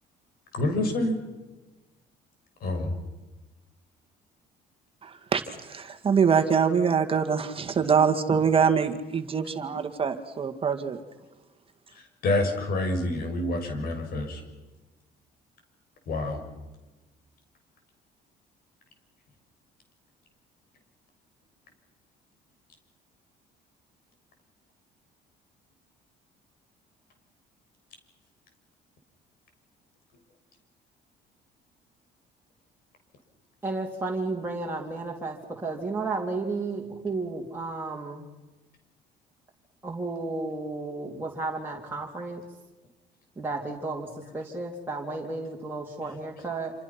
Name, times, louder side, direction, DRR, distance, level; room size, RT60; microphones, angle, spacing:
voice 1, 0.5-1.1 2.6-2.9 12.2-14.4 16.1-16.4, left 2 dB, 60° left, 5 dB, 6.4 m, -27 dB
voice 2, 5.0-11.0, right 6 dB, 35° right, 7 dB, 2.1 m, -24 dB
voice 3, 33.6-38.3 39.8-42.4 43.4-44.1 44.3-46.7, right 3 dB, 10° right, -2 dB, 3.6 m, -33 dB
27.5 x 27.5 x 6.0 m, 1.1 s
cardioid pair, 110°, 17 cm